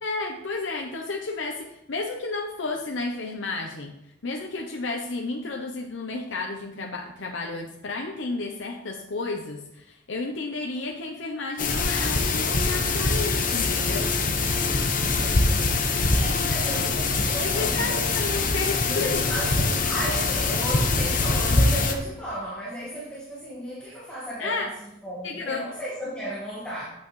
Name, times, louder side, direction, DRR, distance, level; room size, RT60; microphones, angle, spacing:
voice 1, 0.0-3.9 4.2-14.1 17.4-19.1 24.4-24.7 25.2-25.7, left 3 dB, 80° left, 2 dB, 0.8 m, -32 dB
sound 1, 11.6-21.9, left 3 dB, 45° left, 0.9 m, -24 dB
voice 2, 15.0-18.0 18.9-24.7 25.0-26.8, equal, 5° left, -8 dB, 1.7 m, -34 dB
8.7 x 8.4 x 3.2 m, 0.84 s
head